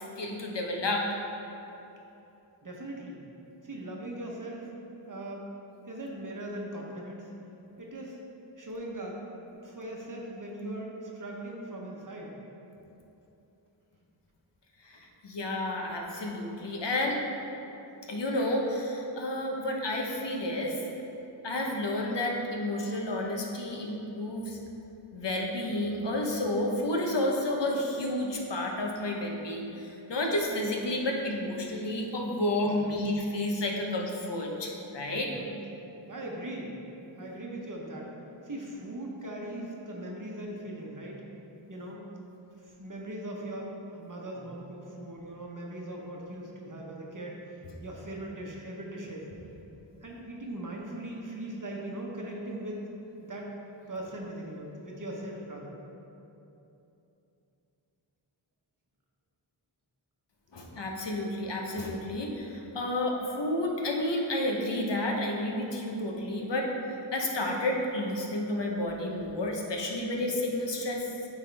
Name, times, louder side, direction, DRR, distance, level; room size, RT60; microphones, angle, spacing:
voice 1, 0.2-1.1 14.8-17.2 18.1-20.8 21.4-24.6 25.1-35.3 60.5-71.0, left 1 dB, 65° left, 0 dB, 1.0 m, -31 dB
voice 2, 2.6-3.2 3.6-4.7 5.1-5.5 5.9-7.3 7.8-8.2 8.6-9.2 9.6-12.4 32.6-33.0 35.1-35.5 36.1-36.8 37.2-38.1 38.4-41.2 41.7-42.0 42.6-49.3 50.0-52.9 53.3-53.5 53.9-55.7, right 1 dB, 40° right, -2 dB, 1.0 m, -39 dB
8.9 x 3.6 x 3.4 m, 2.9 s
wide cardioid pair, 50°, 46 cm